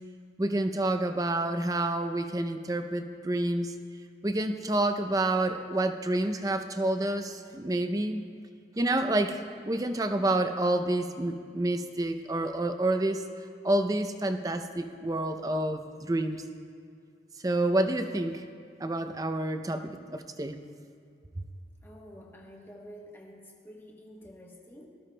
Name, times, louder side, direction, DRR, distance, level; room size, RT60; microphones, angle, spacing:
voice 1, 0.4-3.7 4.2-8.2 8.8-9.4 9.7-13.2 13.6-16.4 17.4-18.4 18.8-20.6, right 1 dB, 20° right, 8 dB, 0.5 m, -28 dB
voice 2, 21.8-24.9, equal, 15° left, -1 dB, 1.1 m, -49 dB
19.0 x 14.0 x 2.2 m, 2.3 s
head